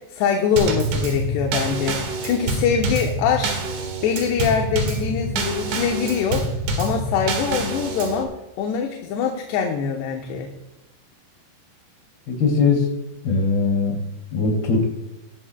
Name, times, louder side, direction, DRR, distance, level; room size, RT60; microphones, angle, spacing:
voice 1, 0.0-3.5 4.0-6.4 6.8-10.5, left 6 dB, 75° left, 2 dB, 3.0 m, -23 dB
Drum kit / Snare drum / Bass drum, 0.6-8.2, right 2 dB, 70° right, 3.8 m, -26 dB
voice 2, 12.3-12.9 13.2-14.0 14.3-14.8, left 4 dB, 60° left, 1 dB, 4.4 m, -20 dB
17.5 x 12.0 x 2.2 m, 0.97 s
omnidirectional pair, 5.1 m